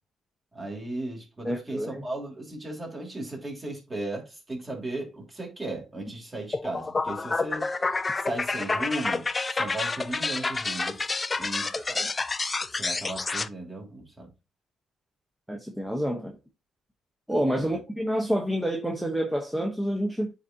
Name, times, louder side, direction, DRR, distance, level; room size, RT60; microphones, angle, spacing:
voice 1, 0.5-7.7 8.2-11.1 11.4-11.7 12.7-14.3 17.6-17.8, right 1 dB, 20° right, 3.1 m, -36 dB
voice 2, 1.4-2.0 11.7-12.1 15.5-16.3 17.3-20.3, equal, 5° right, 1.2 m, -28 dB
sound 1, 6.5-13.5, left 3 dB, 25° left, 0.5 m, -29 dB
9.0 x 3.8 x 2.8 m
cardioid pair, 90°, 0 cm